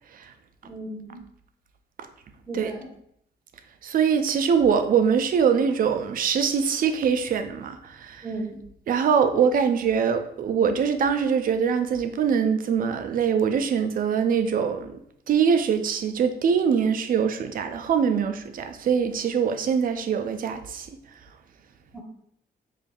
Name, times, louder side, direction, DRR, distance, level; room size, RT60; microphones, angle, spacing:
voice 1, 0.6-1.2 2.5-2.9 8.2-8.6 21.9-22.0, right 2 dB, 5° right, -3 dB, 0.8 m, -35 dB
voice 2, 3.8-8.2 8.9-15.0 15.3-20.9, right 7 dB, 55° right, 8 dB, 0.4 m, -23 dB
4.9 x 2.6 x 2.3 m, 0.71 s
cardioid pair, 100°, 18 cm